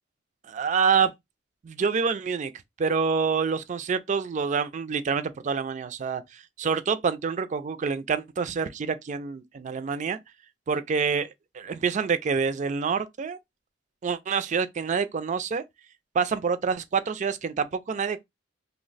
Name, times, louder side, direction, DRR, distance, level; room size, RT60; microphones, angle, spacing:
voice 1, 0.5-1.1 1.6-2.5 2.8-10.2 10.7-13.4 14.0-15.6 16.1-18.2, right 5 dB, 40° right, 0.4 m, -27 dB
2.8 x 2.1 x 3.9 m
head